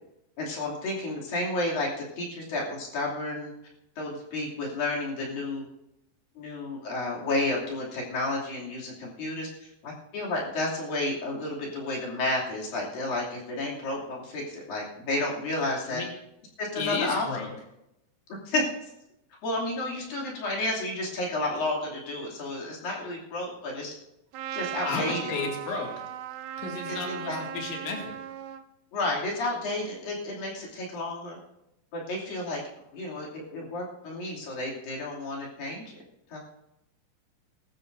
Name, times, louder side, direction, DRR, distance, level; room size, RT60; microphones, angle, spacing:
voice 1, 0.4-1.9 2.2-3.5 4.0-5.6 6.4-16.0 16.6-17.2 18.3-18.6 19.4-23.9 24.5-25.2 26.9-27.4 28.9-31.4 31.9-32.6 32.9-35.9 36.3-36.4, left 2 dB, 50° left, -3 dB, 4.2 m, -31 dB
voice 2, 16.8-17.5 24.8-25.9 26.6-28.2, left 5 dB, 80° left, 0 dB, 4.7 m, -33 dB
Trumpet, 24.3-28.6, right 10 dB, 80° right, 2.4 m, -37 dB
21.5 x 13.0 x 2.7 m, 0.85 s
omnidirectional pair, 5.4 m